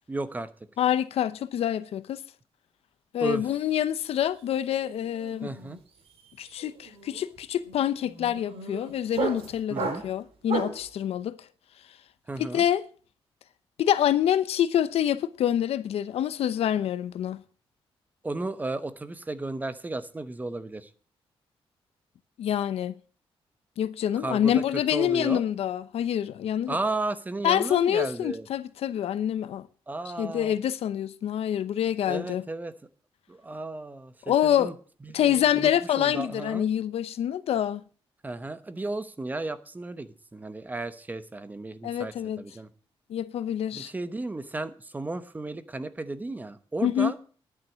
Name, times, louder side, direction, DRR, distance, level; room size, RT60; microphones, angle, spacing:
voice 1, 0.1-0.5 3.2-3.4 5.4-5.8 9.7-10.0 12.3-12.6 18.2-20.9 24.2-24.6 24.9-25.4 26.7-28.5 29.9-30.6 32.1-32.7 33.3-34.7 35.0-35.7 36.0-36.7 38.2-42.7 43.7-47.2, right 2 dB, 15° right, 0.9 m, -34 dB
voice 2, 0.8-2.2 3.1-5.5 6.4-11.4 12.4-12.8 13.8-17.4 22.4-22.9 23.8-26.8 27.4-29.7 30.2-32.4 34.3-34.7 35.1-37.8 41.8-42.4 43.1-43.9 46.8-47.1, left 10 dB, 90° left, 0.8 m, -26 dB
sound 1, 4.1-4.4 4.7-10.9, right 5 dB, 75° right, 2.7 m, -35 dB
11.0 x 9.3 x 6.3 m
wide cardioid pair, 145°, 10 cm